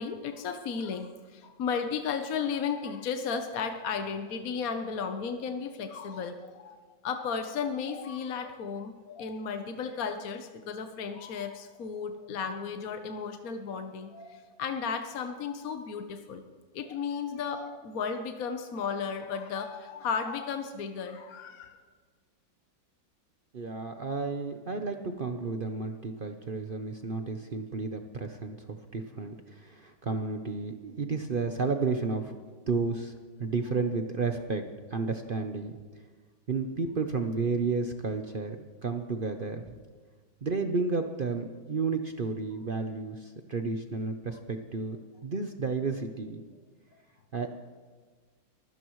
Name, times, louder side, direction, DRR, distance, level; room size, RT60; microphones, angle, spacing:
voice 1, 0.0-16.4 16.7-21.8, left 6 dB, 55° left, 6 dB, 1.2 m, -34 dB
voice 2, 23.5-32.4 32.7-33.1 33.4-34.7 34.9-35.8 36.5-39.7 40.4-45.0 45.2-46.4 47.3-47.5, right 4 dB, 65° right, 5 dB, 0.5 m, -32 dB
23.0 x 16.0 x 3.1 m, 1.5 s
omnidirectional pair, 2.1 m